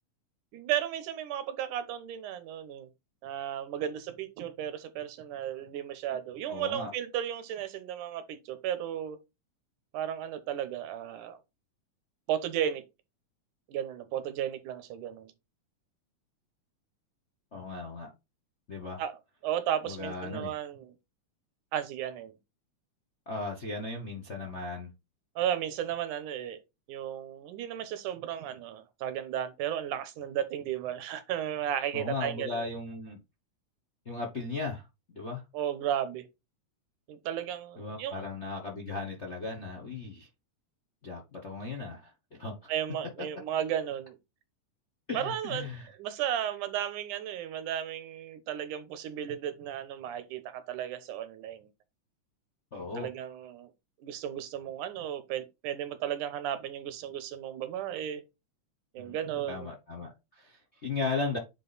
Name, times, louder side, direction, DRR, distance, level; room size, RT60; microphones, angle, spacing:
voice 1, 0.5-2.9 3.2-9.2 9.9-11.4 12.3-12.8 13.7-15.3 19.0-19.1 19.4-20.9 21.7-22.3 25.4-26.6 26.9-32.6 35.5-36.3 37.1-38.2 42.7-44.2 45.1-45.7 46.0-51.7 53.0-53.7 54.0-58.2 58.9-59.7, right 10 dB, 85° right, 2.5 m, -34 dB
voice 2, 6.5-6.9 17.5-18.1 18.7-19.0 19.8-20.5 23.3-24.9 31.9-33.2 34.0-35.4 37.8-40.3 41.0-42.7 45.1-46.0 52.7-53.1 59.0-59.2 59.5-61.4, left 3 dB, 65° left, 0.6 m, -37 dB
9.0 x 3.7 x 4.1 m
omnidirectional pair, 3.5 m